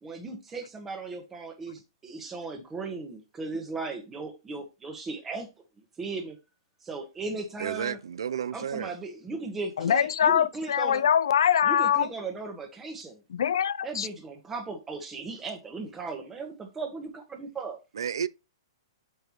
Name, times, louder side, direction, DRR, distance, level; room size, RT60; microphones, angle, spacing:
voice 1, 0.0-5.5 6.0-6.4 6.8-8.0 8.5-11.0 11.6-13.2 13.8-17.8, right 3 dB, 10° right, 1.2 m, -37 dB
voice 2, 7.6-9.0 17.9-18.3, right 8 dB, 80° right, 0.5 m, -32 dB
voice 3, 9.8-12.1 13.3-14.1, left 9 dB, 75° left, 0.5 m, -23 dB
7.9 x 5.3 x 3.1 m
hypercardioid pair, 170°, 2 cm